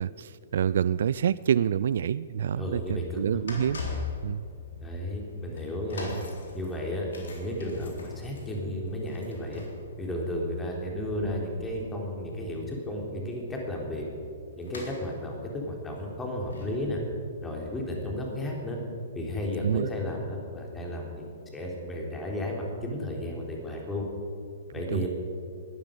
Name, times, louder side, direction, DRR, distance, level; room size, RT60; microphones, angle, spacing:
voice 1, 0.0-3.8 4.2-4.4 19.6-19.9 24.9-25.1, right 9 dB, 60° right, 17 dB, 0.3 m, -27 dB
voice 2, 2.6-3.4 4.8-6.1 6.5-9.6 10.0-14.1 14.6-17.0 17.4-18.8 19.1-21.2 21.5-24.1 24.7-25.1, left 1 dB, 10° left, -1 dB, 3.6 m, -33 dB
sound 1, 3.2-19.4 20.0-20.1, left 4 dB, 70° left, 3.8 m, -43 dB
20.5 x 12.0 x 5.3 m, 2.4 s
figure-of-eight pair, 120°, 0 cm